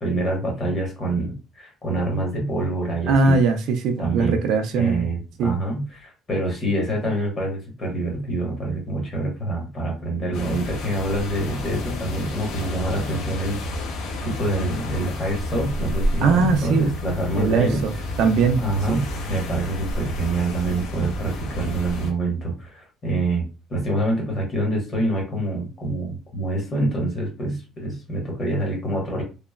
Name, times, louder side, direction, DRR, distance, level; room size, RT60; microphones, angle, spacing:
voice 1, 0.0-3.4 4.0-4.4 4.7-13.8 14.2-18.2 18.6-23.4 23.7-29.2, right 1 dB, 25° left, 1.0 m, -26 dB
voice 2, 3.1-5.1 5.4-5.5 16.2-16.9 17.4-17.9 18.2-18.6 18.9-19.0, right 4 dB, 60° right, 0.4 m, -20 dB
sound 1, 10.3-22.1, left 1 dB, 80° left, 0.7 m, -30 dB
2.9 x 2.0 x 2.3 m
cardioid pair, 175°, 0 cm